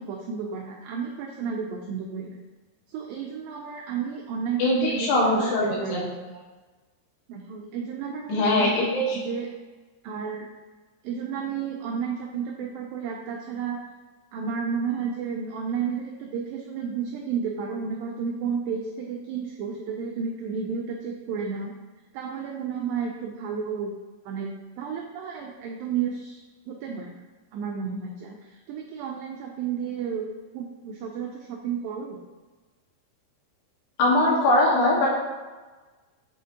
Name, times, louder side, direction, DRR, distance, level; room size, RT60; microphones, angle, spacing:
voice 1, 0.0-2.4 2.9-6.4 7.3-8.7 9.2-9.5 10.0-10.5 11.0-13.8 14.3-21.7 22.1-23.9 24.3-26.4 26.7-27.2 27.5-30.2 30.5-32.2, right 6 dB, 90° right, 0 dB, 2.0 m, -32 dB
voice 2, 4.6-6.0 8.3-9.2 34.0-35.1, left 1 dB, 80° left, -5 dB, 3.7 m, -21 dB
8.3 x 4.3 x 2.8 m, 1.3 s
omnidirectional pair, 4.7 m